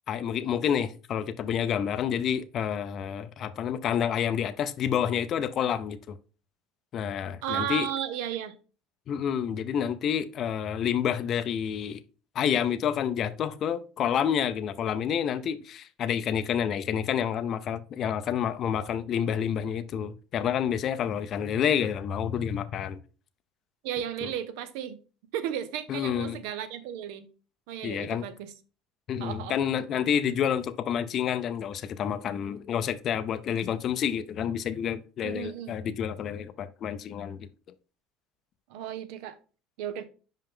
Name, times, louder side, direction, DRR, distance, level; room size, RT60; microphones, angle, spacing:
voice 1, 0.1-6.2 6.9-7.9 9.1-12.0 12.3-23.0 24.2-24.3 25.9-26.4 27.8-28.3 29.1-37.5, left 8 dB, 45° left, 0.5 m, -29 dB
voice 2, 7.4-8.5 23.8-25.0 25.3-27.3 27.7-28.5 29.2-29.6 35.2-35.7 38.7-39.4 39.8-40.0, right 10 dB, 80° right, 0.8 m, -34 dB
5.5 x 5.0 x 3.6 m
supercardioid pair, 110°, 0 cm